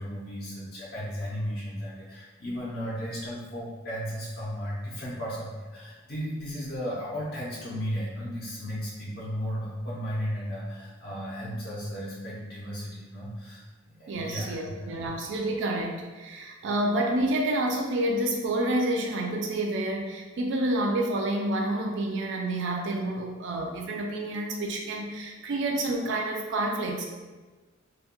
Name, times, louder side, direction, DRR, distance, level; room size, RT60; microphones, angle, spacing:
voice 1, 0.0-13.7 13.9-15.0, equal, 45° left, -6 dB, 0.5 m, -35 dB
voice 2, 14.1-27.0, right 1 dB, 60° right, 1 dB, 0.3 m, -29 dB
2.2 x 2.1 x 2.8 m, 1.3 s
head